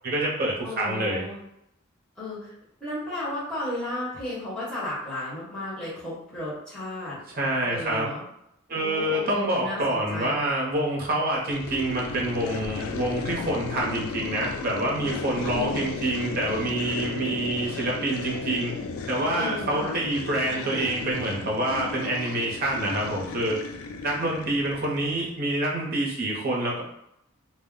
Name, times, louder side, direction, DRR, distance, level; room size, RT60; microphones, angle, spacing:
voice 1, 0.0-1.3 7.3-8.1 8.7-18.7 19.1-23.6 24.0-26.8, right 1 dB, 45° right, -3 dB, 0.7 m, -27 dB
voice 2, 0.6-1.4 2.2-2.5 2.8-7.2 7.6-8.2 8.7-10.4 15.5-15.8 19.3-20.0, left 1 dB, 5° left, -11 dB, 1.0 m, -34 dB
sound 1, 11.5-25.4, left 4 dB, 80° left, 0.3 m, -35 dB
2.3 x 2.1 x 3.6 m, 0.79 s
head